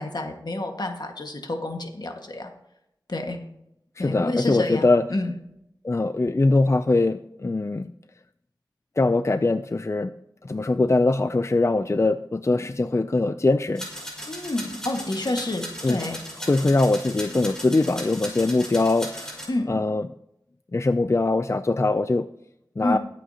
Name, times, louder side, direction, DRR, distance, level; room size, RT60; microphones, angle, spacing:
voice 1, 0.0-2.5 3.1-3.4 4.0-5.3 14.3-16.2 19.5-19.8 22.8-23.0, left 2 dB, 60° left, 3 dB, 1.7 m, -29 dB
voice 2, 4.0-5.0 5.8-7.9 9.0-10.1 10.4-13.9 15.8-16.0 16.5-20.1 20.7-22.2 22.8-23.0, left 2 dB, 35° left, 11 dB, 0.4 m, -22 dB
sound 1, 13.8-19.5, equal, 10° left, 5.1 m, -37 dB
22.0 x 8.3 x 2.9 m, 0.80 s
wide cardioid pair, 65°, 8 cm